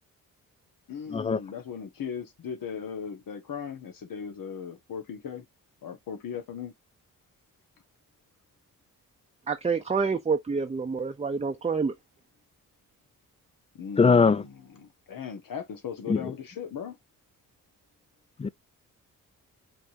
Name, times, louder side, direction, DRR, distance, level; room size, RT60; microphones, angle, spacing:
voice 1, 0.9-5.4 5.8-6.7 13.7-17.0, left 7 dB, 75° left, 1.5 m, -38 dB
voice 2, 9.5-11.9, right 5 dB, 20° right, 0.6 m, -27 dB
voice 3, 14.0-14.4 16.1-16.2 18.4-18.5, left 5 dB, 20° left, 0.3 m, -20 dB
5.1 x 3.4 x 2.8 m
cardioid pair, 70°, 34 cm